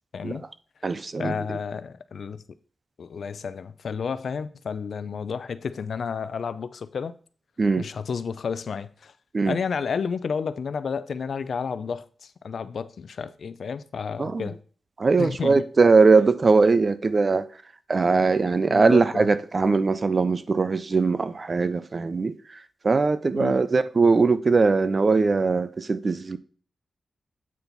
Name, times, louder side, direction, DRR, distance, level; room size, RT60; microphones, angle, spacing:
voice 1, 0.1-0.5 1.2-2.4 3.0-7.1 7.8-9.1 9.5-14.6 15.2-15.7 18.7-19.3 23.3-23.6, left 6 dB, 70° left, 0.4 m, -31 dB
voice 2, 0.8-1.6 7.6-7.9 9.3-9.6 14.2-14.5 15.0-17.5 17.9-22.4 22.8-26.4, right 4 dB, 40° right, 0.5 m, -21 dB
8.4 x 4.4 x 4.0 m
wide cardioid pair, 100°, 0 cm